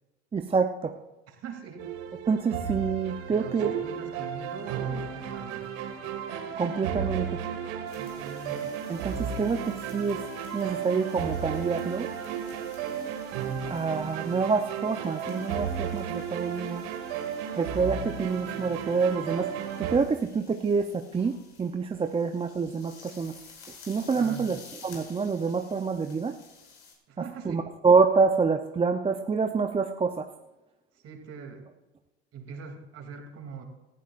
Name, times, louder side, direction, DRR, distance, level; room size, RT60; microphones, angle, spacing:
voice 1, 0.3-0.9 2.3-3.7 6.6-7.4 8.9-10.2 10.5-12.1 13.7-16.8 17.6-19.5 19.8-23.3 23.9-24.6 24.8-26.3 27.5-30.3, right 5 dB, 15° right, 6 dB, 0.7 m, -27 dB
voice 2, 1.3-2.0 3.3-5.7 8.0-8.6 9.3-9.5 24.1-24.5 27.1-27.7 31.0-31.6 32.3-33.6, right 6 dB, 45° right, 3 dB, 2.9 m, -42 dB
sound 1, 1.8-20.0, right 7 dB, 70° right, 2.1 m, -34 dB
sound 2, 7.9-26.9, left 5 dB, 60° left, 5.4 m, -54 dB
18.5 x 14.0 x 2.5 m, 1.0 s
hypercardioid pair, 85°, 33 cm